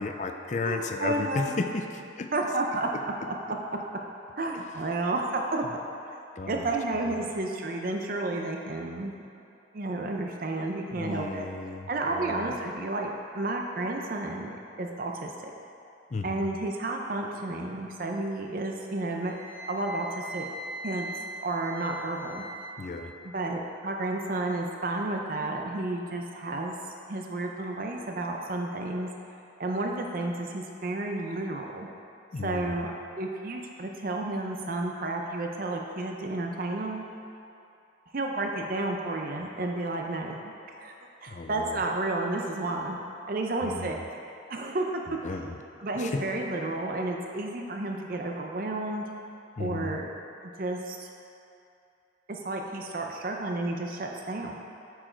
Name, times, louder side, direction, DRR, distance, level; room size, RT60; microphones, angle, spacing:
voice 1, 0.0-2.3 2.9-3.0 6.4-6.7 10.9-11.9 12.1-12.5 16.1-16.5 22.8-23.1 32.3-32.9 41.3-41.8 43.6-44.0 45.2-45.5 46.0-46.2 49.6-50.0, left 3 dB, 40° left, 5 dB, 0.4 m, -34 dB
voice 2, 0.6-1.6 2.3-2.9 3.3-3.4 4.4-5.7 6.1-6.2 6.4-9.2 9.7-11.5 11.9-15.5 16.2-19.3 19.7-20.5 20.8-21.1 21.4-22.4 23.2-26.8 27.1-29.1 29.6-31.9 32.4-32.9 33.2-37.0 38.1-40.5 40.8-40.9 41.2-43.0 43.3-44.0 44.5-45.2 45.8-49.0 49.6-50.1 50.4-51.1 52.3-54.5, right 2 dB, 50° right, 1 dB, 0.6 m, -31 dB
Wind instrument woodwind instrument, 19.2-22.7, right 1 dB, 10° right, 1.4 m, -40 dB
8.7 x 4.8 x 4.4 m, 2.6 s
head